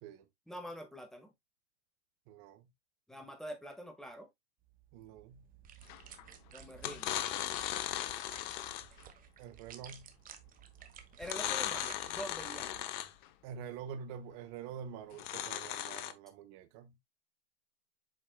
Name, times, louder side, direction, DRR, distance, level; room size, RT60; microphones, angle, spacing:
voice 1, 0.5-1.3 3.1-4.3 6.5-7.2 11.2-12.8, equal, ahead, 1.7 m, -45 dB
voice 2, 2.3-2.7 4.9-5.4 9.4-10.1 13.4-16.9, right 7 dB, 45° right, 1.1 m, -46 dB
sound 1, 4.7-12.9, right 9 dB, 25° right, 1.3 m, -55 dB
sound 2, 5.9-6.2 6.8-9.0 11.2-13.3 15.1-16.1, left 13 dB, 50° left, 1.0 m, -37 dB
7.7 x 5.2 x 2.3 m
hypercardioid pair, 110°, 32 cm